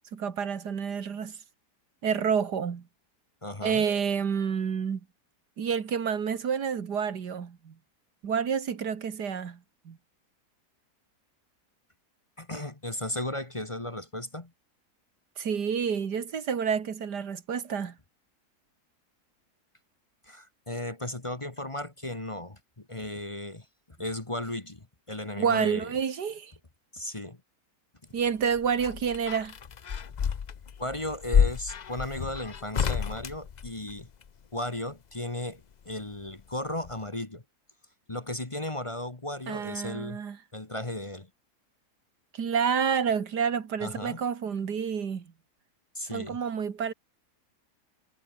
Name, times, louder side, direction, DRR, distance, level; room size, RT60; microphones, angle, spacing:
voice 1, 0.1-1.4 2.0-2.8 3.6-5.0 5.6-7.7 8.2-9.6 9.9-10.0 15.4-18.0 25.4-26.5 28.1-29.5 39.5-40.4 42.3-45.3 46.1-46.9, right 7 dB, 85° right, 2.3 m, -29 dB
voice 2, 3.4-3.9 12.4-14.5 20.2-25.9 26.9-27.4 30.8-34.1 34.5-37.4 38.1-40.2 40.5-41.3 43.8-44.2 45.9-46.4, left 1 dB, 20° left, 1.5 m, -35 dB
sound 1, 28.3-34.3 35.7-36.6 36.8-36.9, left 7 dB, 50° left, 0.5 m, -30 dB
omnidirectional pair, 1.7 m